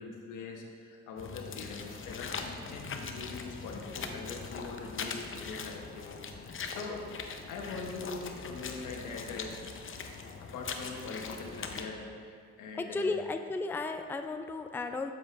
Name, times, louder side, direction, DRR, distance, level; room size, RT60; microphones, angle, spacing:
voice 1, 0.0-7.1 7.5-9.5 10.4-13.3, left 4 dB, 90° left, 1 dB, 1.2 m, -42 dB
sound 1, 1.2-11.9, left 5 dB, 45° left, 0.7 m, -41 dB
sound 2, 2.0-2.5 3.6-3.9 4.8-5.2 6.3-6.7 7.7-8.1 9.4-9.8 11.4-11.8, equal, 10° right, 1.2 m, -55 dB
voice 2, 12.8-15.1, left 3 dB, 5° left, 7 dB, 0.4 m, -34 dB
7.5 x 7.3 x 3.3 m, 2.1 s
cardioid pair, 90°, 30 cm